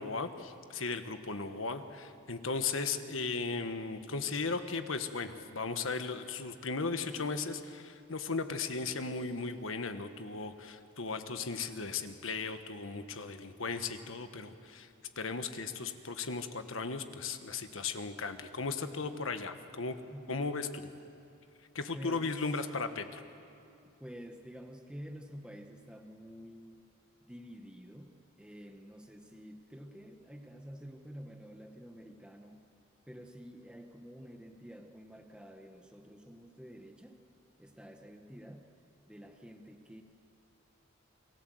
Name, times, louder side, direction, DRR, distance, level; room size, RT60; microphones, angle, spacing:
voice 1, 0.0-14.9 15.2-20.0 20.3-20.8 21.7-23.2, left 4 dB, 75° left, 8 dB, 1.4 m, -36 dB
voice 2, 21.9-22.3 24.0-26.8 27.2-28.1 28.4-32.7 33.1-37.2 37.6-38.7 39.1-40.0, equal, 5° right, 4 dB, 1.0 m, -49 dB
29.0 x 20.0 x 7.9 m, 2.6 s
head